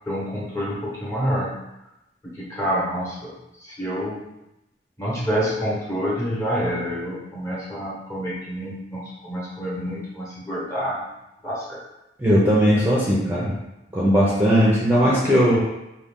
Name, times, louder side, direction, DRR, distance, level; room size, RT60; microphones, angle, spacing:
voice 1, 0.1-1.5 2.2-3.3 3.6-4.3 5.0-11.0 11.4-11.8, equal, 15° left, -6 dB, 1.1 m, -27 dB
voice 2, 12.2-13.5 13.9-15.6, equal, 10° right, -7 dB, 0.7 m, -18 dB
5.0 x 2.4 x 3.6 m, 0.92 s
head